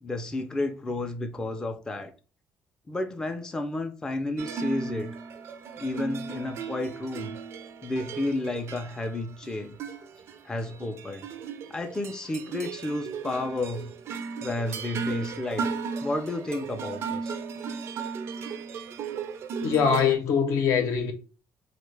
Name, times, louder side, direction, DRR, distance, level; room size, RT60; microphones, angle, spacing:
voice 1, 0.0-2.1 2.9-5.1 5.8-7.4 7.8-9.8 10.4-11.3 11.7-13.9 14.4-15.7 16.0-17.4, left 2 dB, 15° left, 0.4 m, -31 dB
sound 1, 4.4-20.1, right 5 dB, 60° right, 0.3 m, -36 dB
voice 2, 19.6-21.1, left 6 dB, 70° left, 0.6 m, -23 dB
3.1 x 2.1 x 3.2 m
cardioid pair, 120°, 5 cm